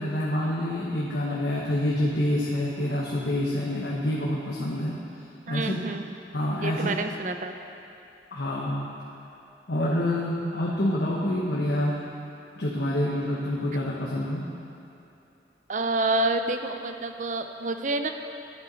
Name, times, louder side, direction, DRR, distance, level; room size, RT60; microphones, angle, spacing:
voice 1, 0.0-5.0 5.5-5.8 6.3-7.0 8.3-8.8 9.7-12.0 12.6-14.4, left 1 dB, 70° left, -5 dB, 1.0 m, -27 dB
voice 2, 5.5-6.0 6.6-7.6 15.7-18.1, right 2 dB, 45° right, 7 dB, 0.5 m, -28 dB
11.5 x 7.8 x 4.1 m, 2.7 s
head